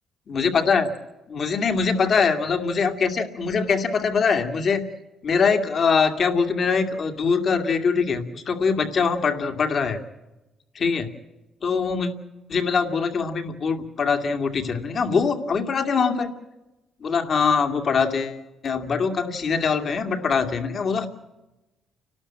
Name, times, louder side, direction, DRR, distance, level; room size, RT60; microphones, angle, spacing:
voice 1, 0.3-0.9 1.3-4.8 5.2-10.0 10.7-11.1 11.6-12.1 12.5-16.3 17.0-21.1, left 5 dB, 50° left, 7 dB, 2.3 m, -23 dB
30.0 x 12.5 x 8.7 m, 1.0 s
cardioid pair, 90°, 0 cm